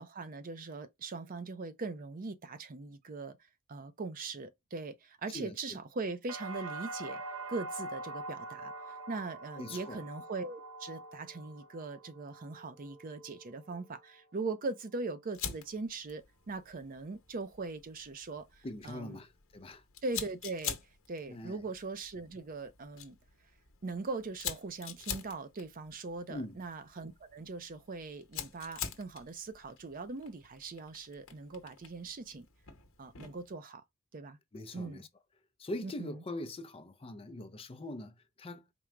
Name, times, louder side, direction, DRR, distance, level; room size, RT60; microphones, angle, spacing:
voice 1, 0.0-3.4 3.7-7.2 7.5-19.2 20.0-20.8 21.1-23.2 23.8-32.5 33.0-33.8 34.1-34.4 34.7-35.0 35.8-36.2, right 3 dB, 40° right, 0.5 m, -40 dB
sound 1, 6.3-14.2 14.6-15.2, right 2 dB, 70° right, 0.7 m, -45 dB
voice 2, 9.6-10.0 18.6-19.8 21.3-21.6 26.3-26.6 34.5-35.1 35.6-38.6, left 1 dB, 25° left, 0.5 m, -42 dB
Fire, 15.3-33.5, left 8 dB, 65° left, 0.9 m, -46 dB
4.5 x 2.0 x 3.6 m
head